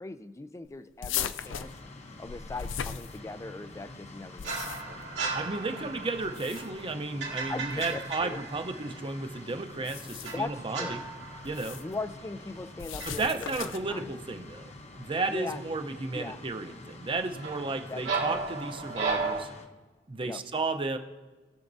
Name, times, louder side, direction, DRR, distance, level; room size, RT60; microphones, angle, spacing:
voice 1, 0.0-1.7 2.2-5.0 7.5-8.4 10.3-11.0 11.8-14.1 15.3-15.6 16.1-16.4 17.9-18.4 20.2-20.4, left 3 dB, 15° left, 12 dB, 0.4 m, -40 dB
sound 1, 1.0-3.6 4.2-5.1 6.2-6.9 7.7-8.0 9.7-10.5 11.4-11.9 12.8-14.0, left 9 dB, 85° left, 0.4 m, -38 dB
sound 2, 1.4-19.7, left 2 dB, 35° left, 0.8 m, -47 dB
sound 3, 4.4-9.3 10.2-12.7 13.0-13.3 17.4-19.4, right 4 dB, 80° right, 2.1 m, -35 dB
voice 2, 5.3-11.0 11.4-11.8 13.0-19.5 20.1-21.0, right 3 dB, 30° right, 6 dB, 0.7 m, -33 dB
20.5 x 7.1 x 2.7 m, 1.3 s
head